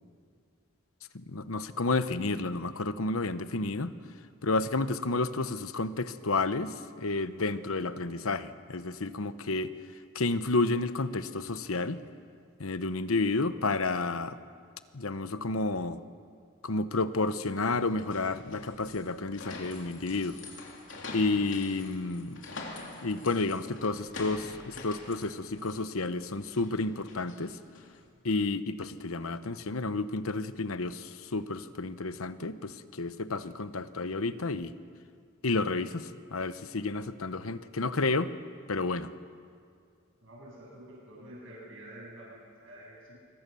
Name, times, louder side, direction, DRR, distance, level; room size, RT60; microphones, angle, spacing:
voice 1, 1.1-3.9 4.4-9.7 10.1-12.0 12.6-14.4 14.9-16.0 16.6-20.4 21.1-22.4 23.0-27.6 28.2-34.7 35.4-38.3 38.7-39.1, left 3 dB, 90° left, 12 dB, 1.0 m, -31 dB
sound 1, 17.6-28.0, left 3 dB, 65° left, 3.6 m, -46 dB
voice 2, 40.2-43.2, right 1 dB, 65° right, -4 dB, 8.0 m, -48 dB
26.0 x 23.5 x 7.0 m, 2.2 s
head